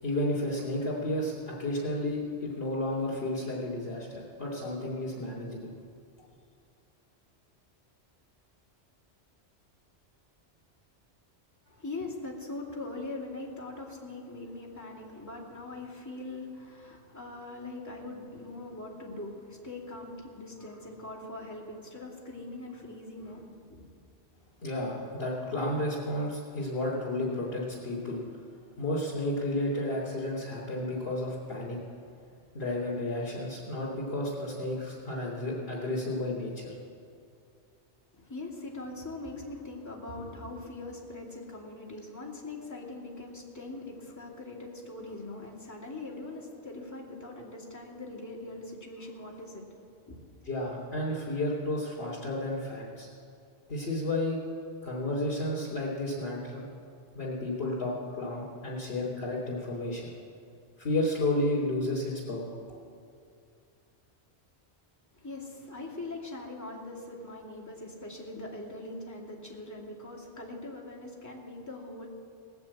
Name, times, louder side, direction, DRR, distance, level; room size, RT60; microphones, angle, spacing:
voice 1, 0.0-5.7 24.6-28.2 28.8-31.8 32.5-36.8 50.4-53.1 53.7-54.4 54.8-56.7 57.1-60.1 60.8-62.5, left 1 dB, 60° left, -7 dB, 3.3 m, -32 dB
voice 2, 11.7-23.8 38.1-49.8 50.1-50.2 65.1-72.1, left 2 dB, 15° left, -6 dB, 2.7 m, -42 dB
19.5 x 7.0 x 8.6 m, 2.4 s
omnidirectional pair, 1.2 m